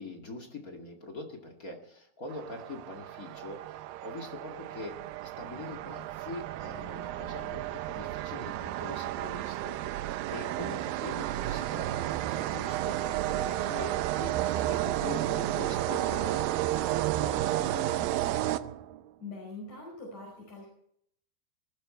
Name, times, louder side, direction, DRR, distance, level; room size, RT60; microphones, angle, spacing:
voice 1, 0.0-5.0 5.2-10.0 10.3-16.4 16.9-18.1, left 2 dB, 30° left, 2 dB, 2.0 m, -43 dB
sound 1, 2.3-19.1, right 14 dB, 80° right, 2.3 m, -32 dB
voice 2, 19.2-20.7, left 3 dB, 45° left, -3 dB, 6.2 m, -43 dB
19.0 x 14.0 x 4.4 m, 0.68 s
omnidirectional pair, 4.4 m